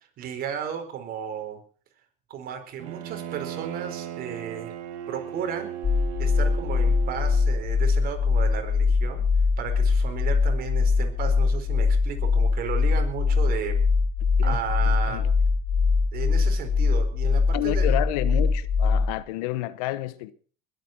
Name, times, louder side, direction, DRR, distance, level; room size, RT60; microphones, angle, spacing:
voice 1, 0.2-1.6 2.3-4.7 5.1-5.7 6.2-9.2 9.6-13.8 14.4-15.3 16.1-18.0, right 8 dB, 55° right, 4.6 m, -34 dB
Bowed string instrument, 2.8-7.7, right 11 dB, 80° right, 2.5 m, -37 dB
sound 1, 5.8-19.2, left 4 dB, 35° left, 2.0 m, -22 dB
voice 2, 14.8-15.3 17.5-20.3, left 16 dB, 85° left, 1.1 m, -30 dB
21.0 x 8.7 x 6.1 m
supercardioid pair, 110°, 19 cm